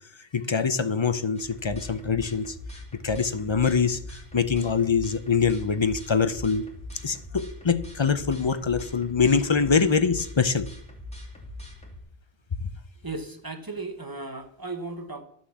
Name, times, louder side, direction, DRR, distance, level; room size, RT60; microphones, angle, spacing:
voice 1, 0.3-2.5 3.0-6.6 7.0-10.7, left 5 dB, 35° left, 11 dB, 0.5 m, -24 dB
sound 1, 1.4-12.0, left 1 dB, 5° left, 2.6 m, -41 dB
voice 2, 13.0-15.2, right 3 dB, 20° right, 7 dB, 1.1 m, -35 dB
11.5 x 6.2 x 7.2 m, 0.70 s
omnidirectional pair, 1.1 m